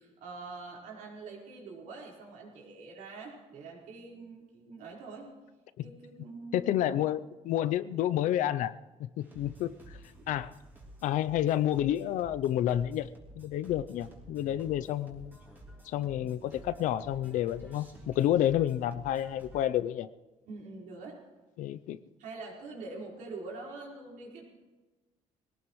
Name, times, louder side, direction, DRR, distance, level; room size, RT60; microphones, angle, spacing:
voice 1, 0.0-5.3 5.8-6.9 10.2-10.3 20.4-21.2 22.2-24.4, right 3 dB, 75° right, -2 dB, 4.6 m, -45 dB
voice 2, 6.5-8.7 9.0-9.7 10.3-10.5 11.0-13.1 13.4-15.4 15.9-20.1 21.6-22.0, left 12 dB, 70° left, 14 dB, 0.6 m, -29 dB
sound 1, 9.2-19.6, right 1 dB, 15° right, 3.3 m, -52 dB
21.5 x 18.0 x 3.2 m, 1.2 s
cardioid pair, 160°, 13 cm